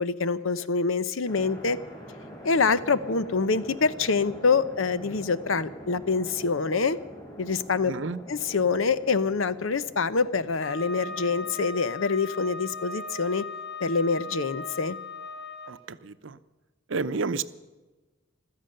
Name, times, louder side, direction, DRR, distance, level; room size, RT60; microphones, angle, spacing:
voice 1, 0.0-1.8 2.4-7.0 7.4-7.9 8.3-13.4 13.8-15.0, left 4 dB, 85° left, 15 dB, 0.8 m, -25 dB
sound 1, 1.3-11.7, equal, 20° left, 3.3 m, -45 dB
voice 2, 7.9-8.2 15.7-16.4 16.9-17.4, right 4 dB, 70° right, 13 dB, 0.7 m, -31 dB
Wind instrument woodwind instrument, 10.6-15.7, left 3 dB, 50° left, 1.6 m, -38 dB
15.5 x 13.5 x 6.6 m, 1.2 s
head